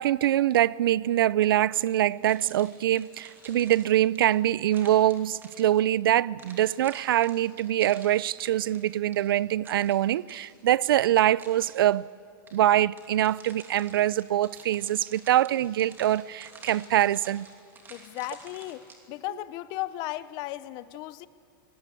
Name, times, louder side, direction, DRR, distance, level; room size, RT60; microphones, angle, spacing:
voice 1, 0.0-12.1 12.5-17.5, right 13 dB, 85° right, 0.5 m, -24 dB
sound 1, 1.9-6.0 6.4-12.0 12.5-19.0, right 4 dB, 20° right, 2.8 m, -51 dB
voice 2, 17.9-21.3, left 16 dB, 40° left, 0.7 m, -36 dB
22.5 x 19.5 x 8.5 m
supercardioid pair, 150°, 12 cm